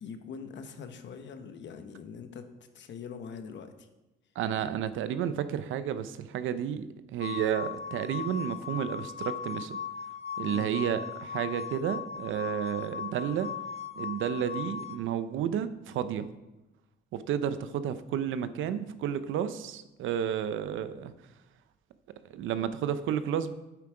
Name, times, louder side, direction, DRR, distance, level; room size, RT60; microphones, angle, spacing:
voice 1, 0.0-3.9 10.5-10.7, left 6 dB, 65° left, 8 dB, 1.1 m, -43 dB
voice 2, 4.4-9.8 10.4-13.5 14.0-16.3 17.1-21.1 22.3-23.5, right 9 dB, 80° right, 12 dB, 0.7 m, -31 dB
sound 1, 7.2-15.0, left 7 dB, 30° left, 0.7 m, -38 dB
8.6 x 8.1 x 4.9 m, 1.0 s
cardioid pair, 90°, 20 cm